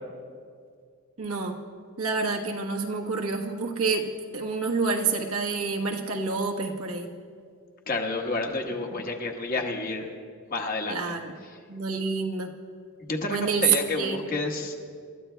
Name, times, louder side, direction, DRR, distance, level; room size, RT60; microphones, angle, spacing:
voice 1, 1.2-1.6 2.0-7.1 10.9-11.4 11.7-12.5 13.3-14.3, right 4 dB, 85° right, 1 dB, 1.3 m, -28 dB
voice 2, 7.9-10.1 10.5-11.1 13.0-14.9, left 2 dB, 40° left, 2 dB, 1.3 m, -30 dB
27.5 x 13.5 x 2.3 m, 2.1 s
head